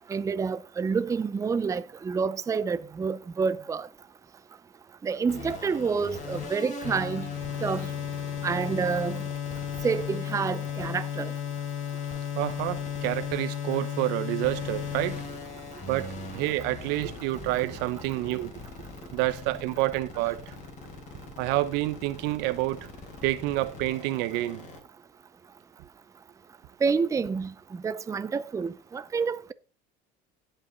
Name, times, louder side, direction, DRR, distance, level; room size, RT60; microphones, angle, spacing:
voice 1, 0.1-3.9 5.0-7.3 7.6-7.9 8.4-9.2 9.8-11.3 26.8-27.5 27.8-29.5, right 5 dB, 20° right, 0.5 m, -28 dB
sound 1, 5.3-24.8, left 8 dB, 45° left, 4.0 m, -36 dB
voice 2, 12.3-15.2 15.9-18.5 19.1-20.6 21.4-22.9 23.2-24.7, right 17 dB, 75° right, 0.8 m, -28 dB
16.5 x 5.7 x 4.0 m
cardioid pair, 115°, 17 cm